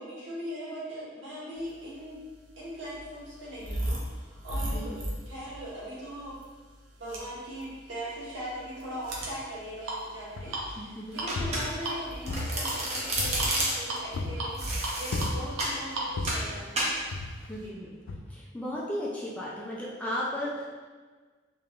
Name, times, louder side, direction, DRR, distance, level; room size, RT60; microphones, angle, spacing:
voice 1, 0.0-2.2 2.6-6.4 7.0-14.6 15.0-16.8 17.5-17.7, equal, 65° right, -9 dB, 1.3 m, -40 dB
sound 1, 2.0-17.7, right 1 dB, 90° right, 0.7 m, -37 dB
voice 2, 4.7-5.0 10.8-11.2 17.5-17.9 18.3-20.6, left 1 dB, 5° left, -6 dB, 0.4 m, -35 dB
sound 2, 10.4-10.8 11.2-12.0 12.3-13.7 14.1-14.6 15.1-15.7 16.2-16.6 17.1-17.6 18.1-18.2, left 2 dB, 75° left, 0.4 m, -35 dB
Domestic sounds home sounds, 11.3-12.0 12.3-14.0 14.6-15.8 16.3-16.5 16.8-17.0, right 1 dB, 35° right, 0.6 m, -31 dB
3.4 x 3.0 x 2.4 m, 1.4 s
head